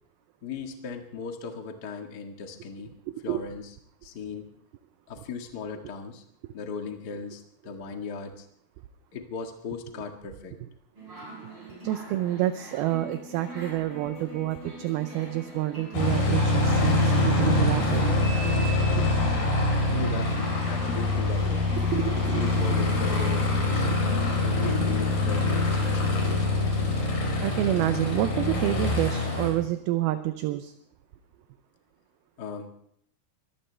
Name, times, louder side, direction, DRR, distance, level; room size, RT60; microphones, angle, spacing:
voice 1, 0.4-2.9 3.2-3.7 4.0-4.5 5.1-6.2 6.5-8.4 9.1-10.5 19.9-21.6 22.1-23.9 24.4-26.6 32.4-32.7, left 5 dB, 80° left, 4 dB, 0.9 m, -37 dB
sound 1, 10.9-29.9, equal, 25° right, 8.0 m, -45 dB
voice 2, 11.8-18.1 19.0-19.2 21.9-22.5 24.8-24.9 27.4-30.7, right 14 dB, 80° right, 10 dB, 2.3 m, -28 dB
Aircraft, 15.9-29.5, left 2 dB, 55° left, 6.0 m, -24 dB
23.5 x 17.0 x 3.3 m, 0.68 s
omnidirectional pair, 5.0 m